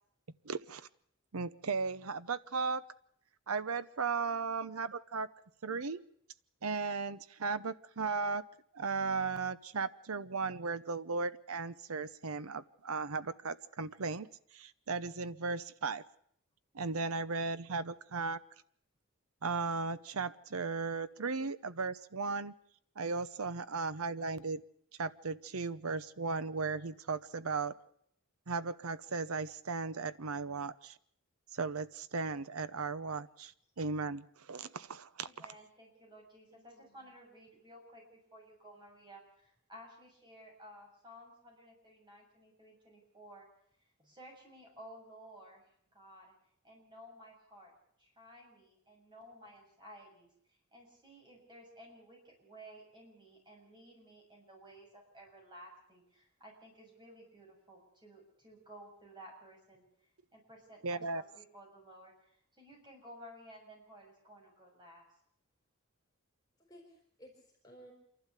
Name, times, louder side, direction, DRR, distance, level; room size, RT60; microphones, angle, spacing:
voice 1, 0.4-0.9 1.3-2.8 3.5-5.3 5.6-6.0 6.6-8.4 8.7-14.3 14.5-16.0 16.7-18.4 19.4-22.5 23.0-24.6 25.0-27.8 28.5-31.0 31.5-35.5 60.8-61.2, right 4 dB, 85° right, 14 dB, 0.9 m, -36 dB
voice 2, 35.2-43.5 44.0-46.3 46.6-47.7 48.0-59.9 60.3-65.1, equal, 20° right, 0 dB, 7.0 m, -55 dB
voice 3, 36.5-37.0 66.6-67.9, equal, 20° left, 1 dB, 4.0 m, -57 dB
27.5 x 12.0 x 8.2 m, 0.67 s
head